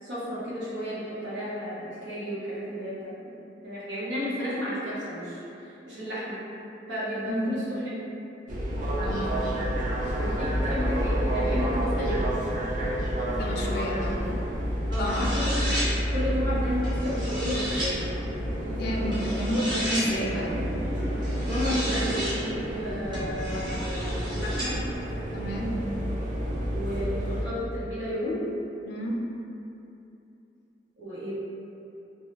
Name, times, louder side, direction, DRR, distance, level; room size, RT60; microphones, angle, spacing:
voice 1, 0.0-3.4 3.6-6.4 6.9-7.8 10.1-12.2 14.9-15.8 16.1-18.0 21.4-24.8 26.7-28.4 31.0-31.3, equal, 80° right, -9 dB, 0.8 m, -32 dB
sound 1, 8.5-27.4, equal, 45° right, 0.4 m, -29 dB
voice 2, 9.0-9.4 13.4-14.2 15.0-15.3 18.7-20.5 25.3-25.8 28.9-29.2, equal, 60° left, -2 dB, 0.4 m, -31 dB
sound 2, 14.9-15.9 16.8-17.9 19.1-20.1 21.2-22.4 23.1-24.7, equal, 25° right, 0.8 m, -33 dB
2.3 x 2.0 x 2.9 m, 2.8 s
head